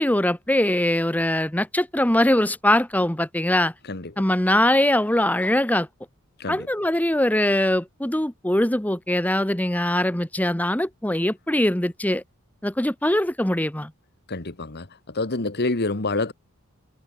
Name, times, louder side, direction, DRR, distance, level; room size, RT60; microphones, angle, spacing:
voice 1, 0.0-3.7 4.2-5.9 6.5-12.2 12.6-13.9, left 1 dB, 5° left, 1.1 m, -22 dB
voice 2, 3.8-4.2 6.4-6.7 14.3-16.3, left 2 dB, 45° left, 1.5 m, -27 dB
head